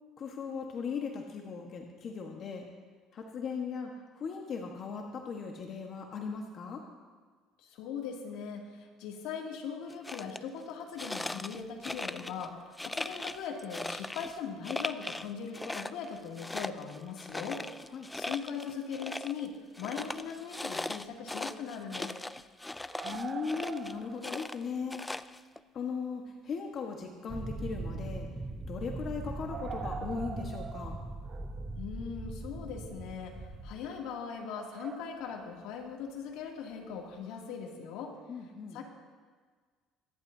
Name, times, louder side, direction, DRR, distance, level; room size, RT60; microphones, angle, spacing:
voice 1, 0.2-2.6 3.1-6.8 17.9-18.1 23.0-25.1 25.7-28.3 28.7-30.9 38.3-38.8, left 5 dB, 45° left, 1 dB, 1.4 m, -38 dB
voice 2, 7.6-17.6 18.1-22.1 31.8-38.2 38.7-38.8, left 6 dB, 80° left, 0 dB, 2.5 m, -40 dB
sound 1, 9.9-10.4 11.0-12.5 12.8-14.4 14.6-15.3 15.5-19.5 19.7-23.9 24.2-25.6, left 2 dB, 10° left, 0.4 m, -39 dB
sound 2, 22.7-24.5 24.9-25.1 26.1-26.2 26.8-26.9 27.1-27.2 29.5-31.7 34.5-35.5 36.9-37.0, right 6 dB, 35° right, 0.7 m, -44 dB
sound 3, 27.3-33.8, right 2 dB, 10° right, 1.0 m, -40 dB
25.0 x 11.5 x 2.8 m, 1.5 s
cardioid pair, 115°, 0 cm